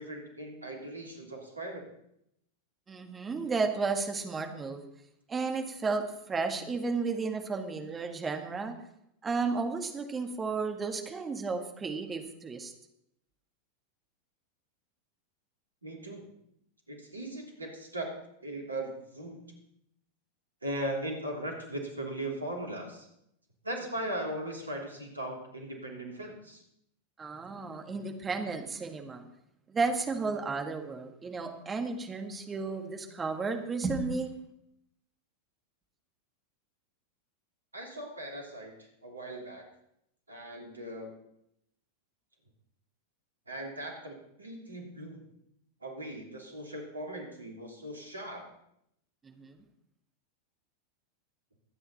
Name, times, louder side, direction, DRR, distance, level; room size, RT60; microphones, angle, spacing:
voice 1, 0.0-1.8 15.8-16.2 16.9-18.1 18.4-19.5 20.6-23.1 23.6-26.6 37.7-39.6 40.3-41.1 43.5-45.2 45.8-48.5, right 1 dB, 80° right, 1 dB, 3.2 m, -39 dB
voice 2, 2.9-4.8 5.3-8.7 9.2-12.7 27.2-29.2 29.7-34.3 49.2-49.6, right 4 dB, 20° right, 5 dB, 1.8 m, -33 dB
22.5 x 9.2 x 4.2 m, 0.76 s
figure-of-eight pair, 90°, 0 cm